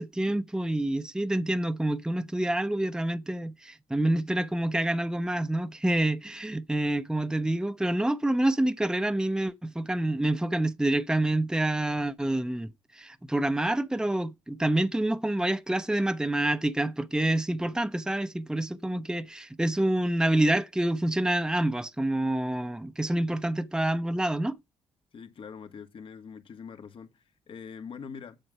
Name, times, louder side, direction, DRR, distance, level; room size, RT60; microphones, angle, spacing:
voice 1, 0.0-24.6, right 1 dB, 5° right, 0.8 m, -27 dB
voice 2, 25.1-28.4, left 6 dB, 55° left, 2.0 m, -43 dB
7.8 x 7.7 x 5.5 m
supercardioid pair, 60°, 11 cm